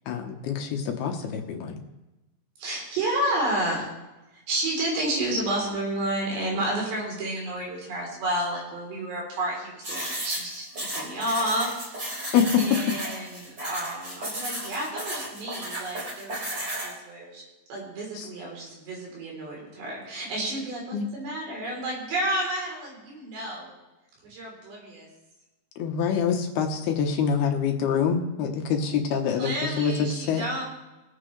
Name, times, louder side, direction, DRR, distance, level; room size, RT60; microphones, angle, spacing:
voice 1, 0.1-1.8 12.3-12.6 18.2-18.3 20.9-21.1 25.8-30.4, left 7 dB, 70° left, 3 dB, 2.9 m, -25 dB
voice 2, 2.6-3.9 4.5-12.3 12.6-17.4 17.7-23.7 24.2-25.1 29.4-30.6, right 1 dB, 75° right, -2 dB, 5.7 m, -31 dB
sound 1, 9.8-16.9, right 1 dB, 30° right, 4.5 m, -34 dB
23.0 x 8.4 x 3.2 m, 1.0 s
omnidirectional pair, 4.9 m